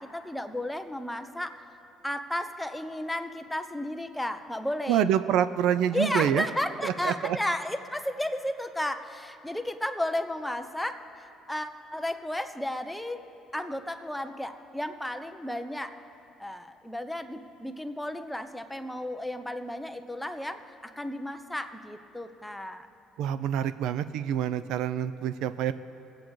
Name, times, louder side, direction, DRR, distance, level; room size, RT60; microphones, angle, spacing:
voice 1, 0.0-1.5 2.0-5.1 5.9-15.9 16.4-22.9, left 1 dB, 5° left, 7 dB, 0.6 m, -33 dB
voice 2, 4.9-6.4 6.8-7.4 23.2-25.7, right 10 dB, 80° right, 13 dB, 0.4 m, -26 dB
25.0 x 8.6 x 3.1 m, 2.9 s
cardioid pair, 120°, 0 cm